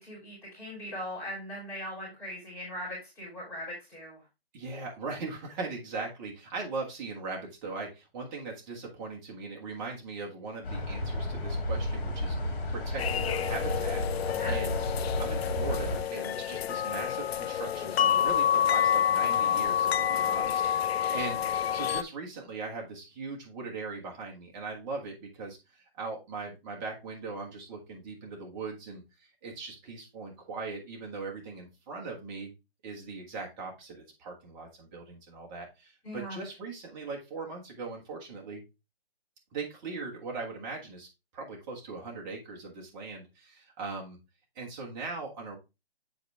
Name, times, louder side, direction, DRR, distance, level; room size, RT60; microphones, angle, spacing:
voice 1, 0.0-4.2 14.3-14.6 36.0-36.4, equal, 10° left, -8 dB, 3.0 m, -40 dB
voice 2, 4.5-14.8 15.2-21.4 21.7-32.5 32.8-38.6 39.5-41.1 41.3-44.2 44.5-45.6, right 4 dB, 20° right, -1 dB, 1.4 m, -40 dB
sound 1, 10.6-16.0, left 1 dB, 60° left, 2.6 m, -32 dB
sound 2, 13.0-22.0, left 9 dB, 80° left, 0.5 m, -28 dB
7.9 x 4.1 x 3.4 m, 0.25 s
hypercardioid pair, 165°, 31 cm